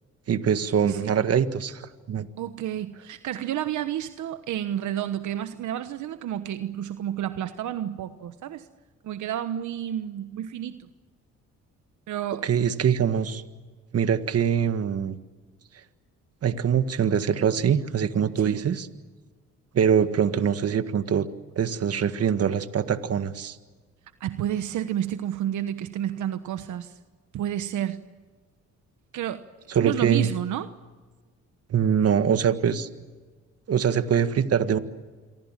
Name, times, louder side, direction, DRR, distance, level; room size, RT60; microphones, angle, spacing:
voice 1, 0.3-2.3 12.4-13.4 13.9-15.2 16.4-18.9 19.7-21.3 21.5-23.6 29.7-30.3 31.7-32.9 33.7-34.8, right 8 dB, 55° right, 10 dB, 1.7 m, -23 dB
voice 2, 0.8-1.2 2.4-8.7 9.0-10.9 12.1-12.5 18.4-18.6 24.2-27.0 27.3-28.0 29.1-29.4 29.8-30.7, right 11 dB, 75° right, 10 dB, 1.2 m, -30 dB
28.0 x 23.5 x 7.5 m, 1.4 s
cardioid pair, 90°, 30 cm